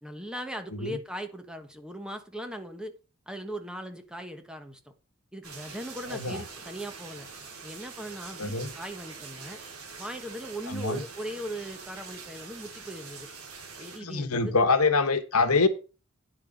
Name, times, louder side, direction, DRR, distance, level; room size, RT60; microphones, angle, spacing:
voice 1, 0.0-2.9 3.3-4.9 5.3-7.3 7.6-9.6 10.0-13.3 13.7-14.5, equal, 5° right, 1.4 m, -39 dB
sound 1, 5.4-14.0, right 5 dB, 75° right, 3.7 m, -44 dB
voice 2, 6.1-6.4 8.4-8.7 10.7-11.0 14.0-15.7, left 4 dB, 80° left, 1.3 m, -25 dB
10.0 x 6.6 x 5.2 m
head